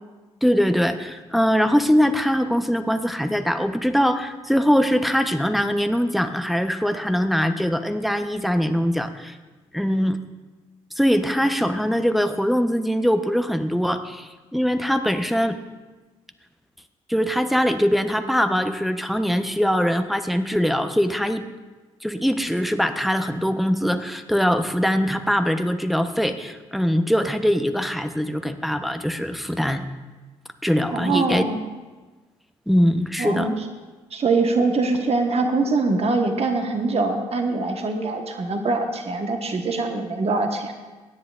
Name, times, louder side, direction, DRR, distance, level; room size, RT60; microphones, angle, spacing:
voice 1, 0.4-9.4 9.7-10.2 11.0-15.6 17.1-21.4 22.0-29.9 30.6-31.4 32.7-33.5, equal, ahead, 8 dB, 0.9 m, -22 dB
voice 2, 30.9-31.6 33.2-33.5 34.1-40.7, right 3 dB, 45° right, 4 dB, 1.4 m, -23 dB
22.0 x 10.0 x 2.5 m, 1.2 s
hypercardioid pair, 45°, 15 cm